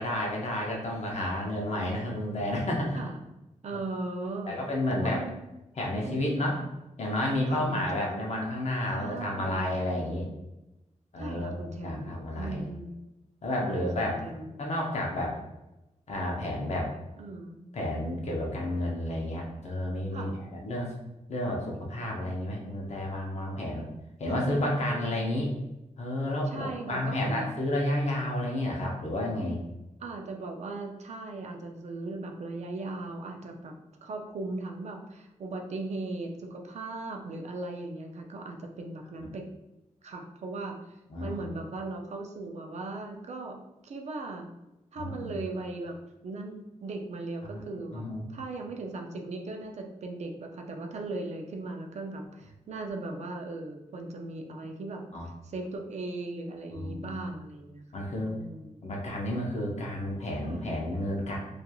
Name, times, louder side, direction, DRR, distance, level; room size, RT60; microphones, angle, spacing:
voice 1, 0.0-3.0 4.5-5.2 5.8-6.6 7.0-10.3 11.1-12.7 13.4-14.2 14.6-15.3 16.1-16.9 17.7-20.9 21.3-23.9 24.2-25.5 26.0-29.6 41.1-41.5 45.0-45.4 47.4-47.6 47.9-48.2 55.1-55.3 56.7-57.2 57.9-58.3 58.8-61.4, left 1 dB, 55° left, -1 dB, 0.6 m, -31 dB
voice 2, 3.6-4.6 4.9-5.3 6.0-6.6 7.5-8.0 8.9-9.7 11.2-12.9 13.6-14.5 17.2-17.8 20.1-20.3 24.3-25.2 26.5-27.5 30.0-33.7 34.0-39.5 40.0-40.8 41.2-43.6 43.8-44.5 44.9-45.9 46.2-48.0 48.3-55.0 55.4-58.8 60.4-60.8, right 2 dB, 60° right, 3 dB, 0.4 m, -38 dB
2.9 x 2.3 x 2.3 m, 0.95 s
wide cardioid pair, 150°, 13 cm